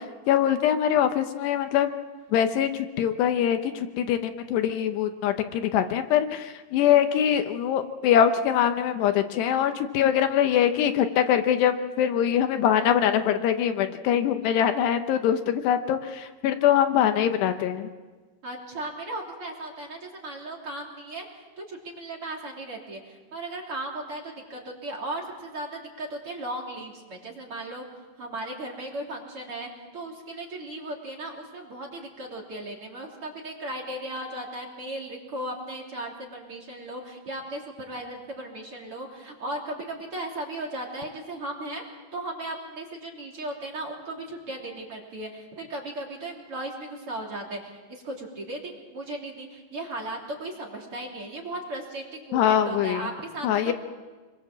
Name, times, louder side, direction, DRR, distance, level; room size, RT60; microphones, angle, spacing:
voice 1, 0.0-1.9 2.3-17.9 52.3-53.1 53.4-53.7, left 9 dB, 75° left, 7 dB, 2.9 m, -23 dB
voice 2, 18.4-21.2 21.6-27.8 28.2-41.8 42.1-53.7, right 1 dB, 35° right, -1 dB, 3.6 m, -36 dB
28.5 x 22.5 x 7.5 m, 1.3 s
omnidirectional pair, 5.1 m